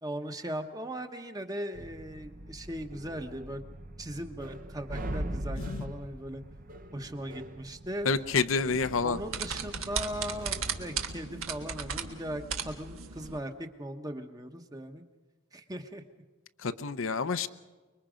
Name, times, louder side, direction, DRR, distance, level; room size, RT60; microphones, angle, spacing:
voice 1, 0.0-3.6 4.0-6.4 6.9-8.1 9.0-15.0 15.5-16.0, equal, 15° right, 6 dB, 1.0 m, -39 dB
sound 1, 1.7-11.0, right 1 dB, 40° right, 0.8 m, -42 dB
voice 2, 8.0-9.2 16.6-17.5, left 4 dB, 70° left, 11 dB, 0.7 m, -28 dB
sound 2, 8.7-13.4, right 6 dB, 75° right, 1.5 m, -36 dB
25.0 x 22.5 x 5.1 m, 1.3 s
head